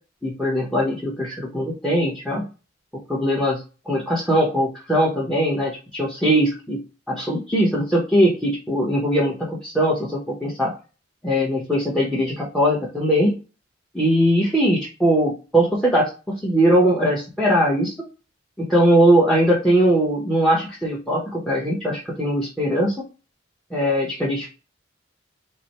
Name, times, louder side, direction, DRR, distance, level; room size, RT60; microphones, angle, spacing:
voice 1, 0.2-2.4 3.1-3.6 3.9-6.8 7.1-10.7 11.2-13.3 13.9-16.1 16.4-17.9 18.6-22.9 23.7-24.5, equal, 5° left, -4 dB, 1.0 m, -20 dB
4.8 x 2.2 x 4.4 m, 0.32 s
head